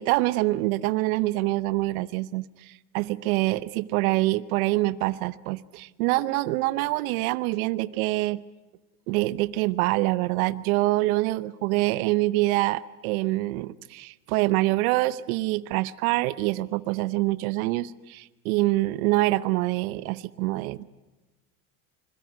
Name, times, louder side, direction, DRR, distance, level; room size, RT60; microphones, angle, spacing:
voice 1, 0.0-8.4 9.1-20.8, right 19 dB, 75° right, 16 dB, 0.9 m, -25 dB
27.0 x 21.5 x 9.5 m, 1.1 s
supercardioid pair, 90°, 43 cm